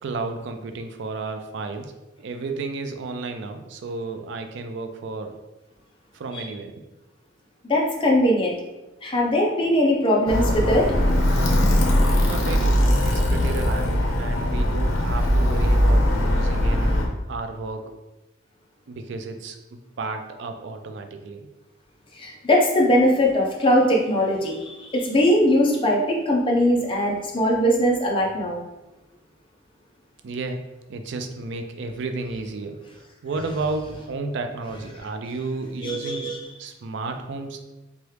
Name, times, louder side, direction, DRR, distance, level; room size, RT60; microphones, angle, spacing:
voice 1, 0.0-1.9 2.2-5.3 6.1-6.7 12.3-18.0 18.9-21.4 30.2-30.6 30.9-32.8 33.2-37.6, right 3 dB, 60° right, 6 dB, 0.3 m, -32 dB
voice 2, 7.7-8.5 9.0-10.9 22.2-28.6 35.8-36.4, equal, 25° left, -2 dB, 0.5 m, -20 dB
Alarm, 10.3-17.1, equal, 85° left, 0.6 m, -20 dB
2.9 x 2.3 x 3.2 m, 1.1 s
head